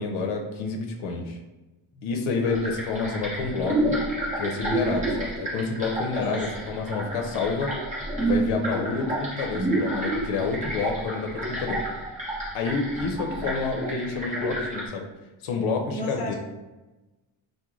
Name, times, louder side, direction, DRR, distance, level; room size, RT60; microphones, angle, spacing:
voice 1, 0.0-1.4 2.0-4.0 4.4-7.8 8.2-11.8 12.5-15.1 15.4-16.3, left 4 dB, 75° left, 3 dB, 0.7 m, -29 dB
sound 1, 2.4-14.9, right 1 dB, 15° right, 0.8 m, -29 dB
voice 2, 15.9-16.3, equal, 15° left, -3 dB, 0.4 m, -33 dB
3.0 x 2.1 x 3.6 m, 1.1 s
cardioid pair, 170°, 50 cm